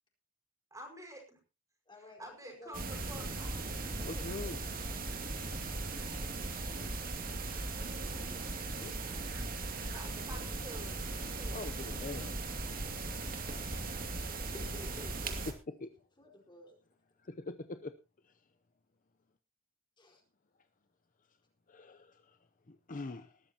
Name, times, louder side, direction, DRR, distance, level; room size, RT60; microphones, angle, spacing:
voice 1, 0.7-1.4 2.2-3.8 8.1-8.4 9.9-11.9 14.8-15.5, right 1 dB, 15° right, 3 dB, 5.4 m, -50 dB
voice 2, 1.9-2.8 4.0-4.7 14.3-15.5 16.2-16.8 20.0-20.2, left 1 dB, 25° left, 1 dB, 4.6 m, -53 dB
sound 1, 2.7-15.5, right 3 dB, 45° right, 2.4 m, -38 dB
voice 3, 4.1-4.6 8.8-9.0 11.5-12.4 13.7-13.8 15.8-16.0 17.2-17.9 21.7-22.4 22.7-23.3, left 3 dB, 40° left, 9 dB, 0.7 m, -43 dB
19.5 x 13.0 x 2.9 m, 0.30 s
head